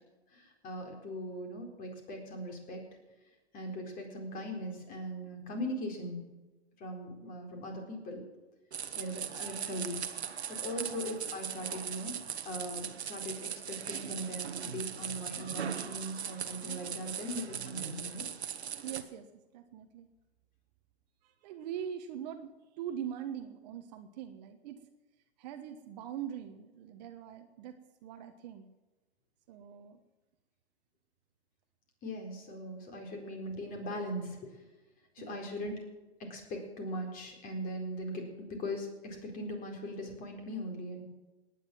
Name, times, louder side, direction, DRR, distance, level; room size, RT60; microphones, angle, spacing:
voice 1, 0.3-2.8 3.5-6.2 6.8-8.3 9.0-10.0 10.5-18.3 32.0-34.6 35.1-35.8 36.2-41.0, equal, 25° left, 3 dB, 4.2 m, -40 dB
sound 1, 8.7-19.0, right 8 dB, 75° right, 1.5 m, -39 dB
voice 2, 18.8-19.2 19.5-20.1 21.2-22.5 22.8-24.8 25.4-28.7 29.5-30.0 35.2-35.5, right 9 dB, 40° right, 7 dB, 1.3 m, -42 dB
18.0 x 10.0 x 6.2 m, 1.1 s
hypercardioid pair, 135°, 32 cm